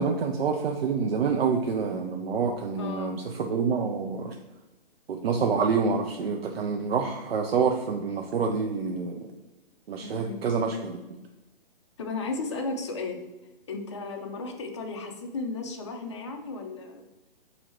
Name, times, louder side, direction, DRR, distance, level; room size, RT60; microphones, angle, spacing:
voice 1, 0.0-4.4 5.1-9.3 9.9-11.0, right 5 dB, 90° right, 4 dB, 0.5 m, -27 dB
voice 2, 2.8-3.2 10.0-10.4 12.0-13.2 13.7-17.0, left 3 dB, 30° left, 2 dB, 0.5 m, -34 dB
2.9 x 2.7 x 4.3 m, 1.1 s
hypercardioid pair, 160°, 29 cm